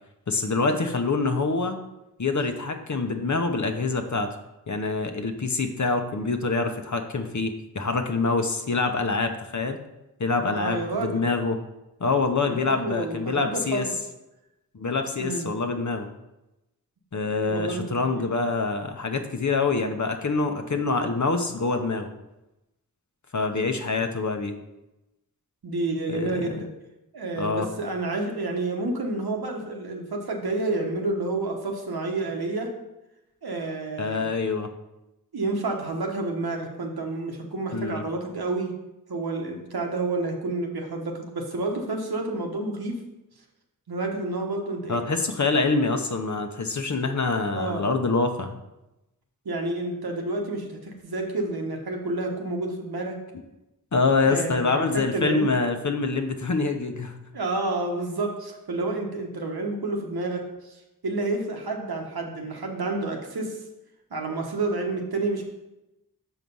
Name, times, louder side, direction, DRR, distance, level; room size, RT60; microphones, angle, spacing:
voice 1, 0.3-1.8 2.2-4.3 4.7-9.8 10.2-11.6 12.0-13.8 14.7-16.1 17.1-22.1 23.3-24.6 26.1-26.5 27.4-27.7 34.0-34.7 37.7-38.0 44.9-48.6 53.9-57.2, left 3 dB, 50° left, 6 dB, 0.9 m, -25 dB
voice 2, 10.5-11.2 12.5-13.9 15.2-15.5 17.5-18.3 25.6-26.7 27.1-32.7 33.4-34.3 35.3-38.7 39.1-43.0 43.9-45.0 47.5-47.9 49.4-53.2 54.2-55.5 57.3-63.6 64.1-65.4, right 2 dB, 90° right, 2 dB, 1.1 m, -29 dB
6.3 x 4.9 x 5.4 m, 0.95 s
wide cardioid pair, 45°, 36 cm